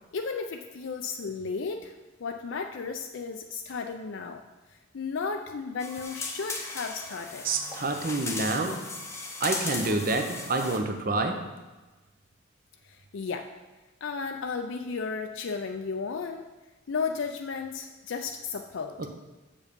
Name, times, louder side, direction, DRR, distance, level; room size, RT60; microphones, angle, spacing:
voice 1, 0.1-1.9 2.2-4.4 4.9-7.5 12.8-13.5 14.0-16.5 16.9-19.0, left 5 dB, 60° left, 4 dB, 0.4 m, -34 dB
sound 1, 5.8-10.8, left 3 dB, 15° left, 0.7 m, -37 dB
voice 2, 7.4-8.8 9.4-11.4, right 2 dB, 40° right, 6 dB, 0.7 m, -28 dB
7.1 x 7.0 x 5.2 m, 1.2 s
head